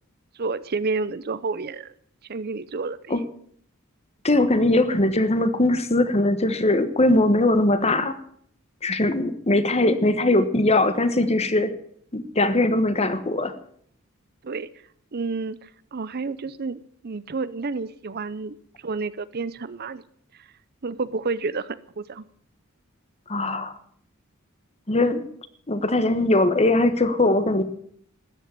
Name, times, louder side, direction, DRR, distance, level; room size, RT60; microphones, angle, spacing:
voice 1, 0.4-1.9 2.3-3.2 14.4-14.7 15.1-18.6 18.8-20.0 20.8-22.2, right 4 dB, 45° right, 16 dB, 0.6 m, -30 dB
voice 2, 4.2-8.2 8.8-11.7 12.1-13.6 23.3-23.7 24.9-25.2 25.7-27.6, left 2 dB, 30° left, 11 dB, 1.2 m, -20 dB
13.5 x 9.5 x 9.0 m, 0.63 s
head